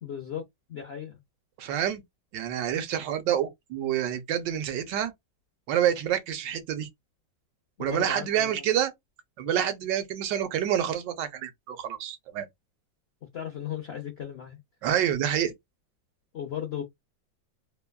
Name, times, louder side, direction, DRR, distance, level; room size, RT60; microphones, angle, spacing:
voice 1, 0.0-0.4 0.7-1.2 7.8-8.8 13.3-14.6 16.3-16.8, left 9 dB, 75° left, 0.5 m, -36 dB
voice 2, 1.6-2.0 2.3-5.1 5.7-6.9 7.8-8.9 9.4-12.5 14.8-15.5, right 10 dB, 75° right, 1.3 m, -27 dB
3.2 x 2.2 x 2.2 m
omnidirectional pair, 2.0 m